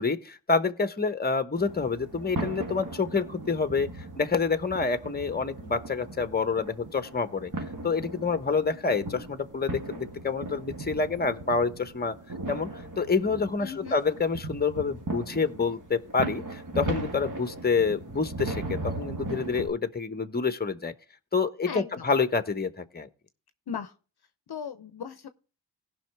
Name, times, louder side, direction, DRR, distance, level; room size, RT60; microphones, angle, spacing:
voice 1, 0.0-3.9 4.2-7.5 7.8-12.2 12.5-20.9 21.3-23.1, left 4 dB, 20° left, 1.0 m, -28 dB
sound 1, 1.6-19.7, right 2 dB, 40° right, 1.9 m, -38 dB
voice 2, 13.6-13.9 21.7-22.1 23.7-23.9 24.5-25.3, left 7 dB, 55° left, 0.8 m, -37 dB
17.0 x 5.7 x 3.4 m
supercardioid pair, 40°, 48 cm